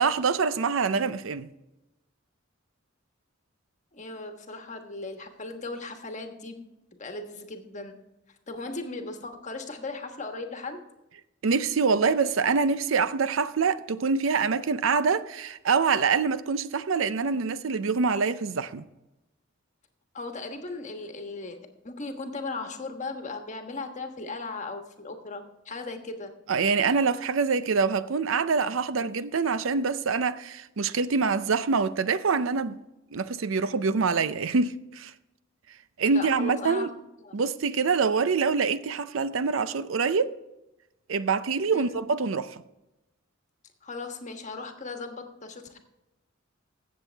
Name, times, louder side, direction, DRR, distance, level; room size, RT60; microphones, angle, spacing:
voice 1, 0.0-1.5 11.4-18.8 26.5-32.8 33.1-35.1 36.0-36.9 37.3-40.3 41.1-42.6, right 5 dB, 80° right, 0.5 m, -25 dB
voice 2, 3.9-8.0 8.5-10.8 20.1-26.3 36.1-36.9 37.2-37.4 41.7-42.0 43.8-45.8, left 3 dB, 35° left, 1.3 m, -37 dB
15.5 x 7.4 x 3.4 m
head